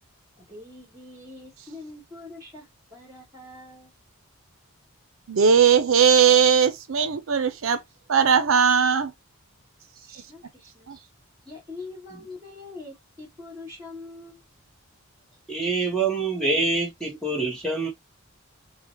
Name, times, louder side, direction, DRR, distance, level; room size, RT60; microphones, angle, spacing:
voice 1, 0.4-3.9 10.1-10.9 11.4-14.4, left 2 dB, 15° right, 1.9 m, -43 dB
voice 2, 5.3-7.8 8.1-9.1 10.9-11.0, right 7 dB, 70° right, 0.5 m, -19 dB
voice 3, 15.5-17.9, right 3 dB, 5° left, 0.8 m, -25 dB
5.6 x 2.1 x 2.7 m
head